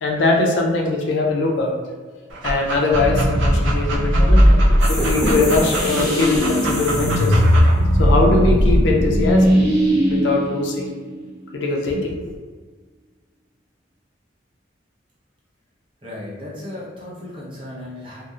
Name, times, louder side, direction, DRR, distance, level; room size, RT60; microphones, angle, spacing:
voice 1, 0.0-1.8 2.4-4.6 4.9-7.4 8.0-9.6 10.1-10.9 11.5-12.2, left 3 dB, 75° left, 0 dB, 0.4 m, -21 dB
Dog, 2.3-7.7, right 1 dB, 85° right, 0.4 m, -27 dB
sound 1, 2.9-11.5, equal, 55° right, 0.8 m, -18 dB
sound 2, 4.8-7.6, equal, 20° left, 0.6 m, -27 dB
voice 2, 16.0-18.2, left 1 dB, 25° right, -7 dB, 0.6 m, -35 dB
2.7 x 2.0 x 2.3 m, 1.5 s
head